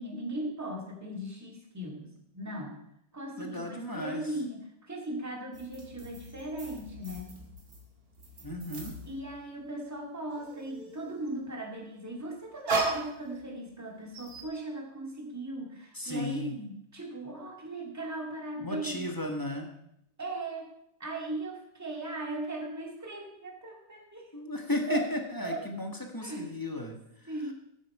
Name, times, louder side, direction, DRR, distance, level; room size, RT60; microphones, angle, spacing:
voice 1, 0.0-2.8 3.1-7.3 9.1-19.1 20.2-20.7 21.0-24.3 24.9-25.1 25.4-25.6 26.2-26.5 27.3-27.5, right 1 dB, 10° right, 1 dB, 2.1 m, -38 dB
voice 2, 3.4-4.3 8.4-9.0 15.9-16.5 18.6-19.7 24.3-27.0 27.2-27.3, left 1 dB, 10° left, 2 dB, 1.4 m, -34 dB
sound 1, 5.5-9.8 10.1-11.3 12.1-13.8 14.1-14.4, right 3 dB, 50° right, 2.4 m, -37 dB
13.5 x 9.1 x 4.9 m, 0.77 s
omnidirectional pair, 2.1 m